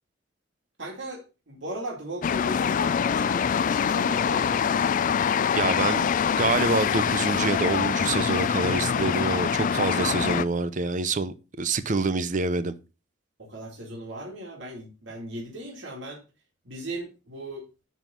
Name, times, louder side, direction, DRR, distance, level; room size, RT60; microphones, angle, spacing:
voice 1, 0.8-4.9 13.4-16.2 16.6-17.7, right 1 dB, 65° right, 2.4 m, -37 dB
sound 1, 2.2-10.4, left 7 dB, 45° left, 0.3 m, -24 dB
voice 2, 5.5-6.1 6.4-12.8, right 3 dB, 40° right, 0.6 m, -26 dB
9.1 x 4.1 x 5.1 m
head